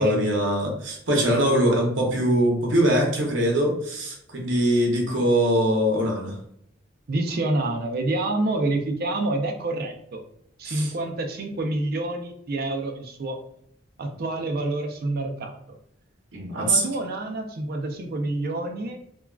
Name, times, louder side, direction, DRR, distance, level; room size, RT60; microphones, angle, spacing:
voice 1, 0.0-6.4 10.6-10.9 16.3-16.8, right 1 dB, 75° right, 0 dB, 0.8 m, -22 dB
voice 2, 7.1-10.2 10.6-13.4 14.0-15.8 16.6-19.0, right 2 dB, 55° right, 4 dB, 0.5 m, -28 dB
3.5 x 2.2 x 2.3 m, 0.71 s
head